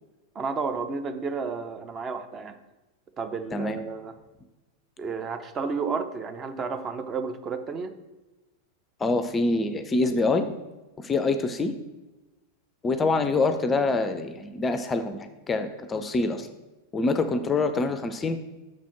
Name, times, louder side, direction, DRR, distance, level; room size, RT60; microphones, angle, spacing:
voice 1, 0.3-2.6 3.2-4.1 5.0-7.9, right 5 dB, 25° right, 8 dB, 0.6 m, -32 dB
voice 2, 9.0-10.5 11.0-11.8 12.8-16.5 16.9-18.4, left 3 dB, 20° left, 9 dB, 0.5 m, -25 dB
6.3 x 4.1 x 5.8 m, 1.1 s
figure-of-eight pair, 90°, 0 cm